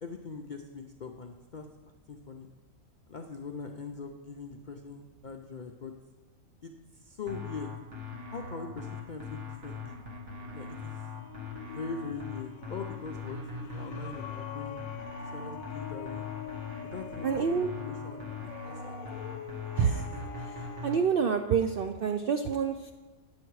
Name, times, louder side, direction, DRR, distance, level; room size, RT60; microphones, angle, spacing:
voice 1, 0.0-1.7 2.1-2.5 3.1-5.9 6.6-7.7 8.3-10.0 10.5-11.0 11.7-14.8 15.2-16.3 16.9-17.4 17.8-19.0, left 5 dB, 60° left, 3 dB, 0.4 m, -42 dB
sound 1, 7.3-21.0, left 4 dB, 55° right, 1.7 m, -41 dB
sound 2, 10.6-21.1, left 8 dB, 75° left, 1.0 m, -44 dB
voice 2, 17.2-17.7 19.8-20.0 20.4-22.9, right 6 dB, 70° right, 6 dB, 0.5 m, -28 dB
9.6 x 7.2 x 4.7 m, 1.2 s
omnidirectional pair, 1.5 m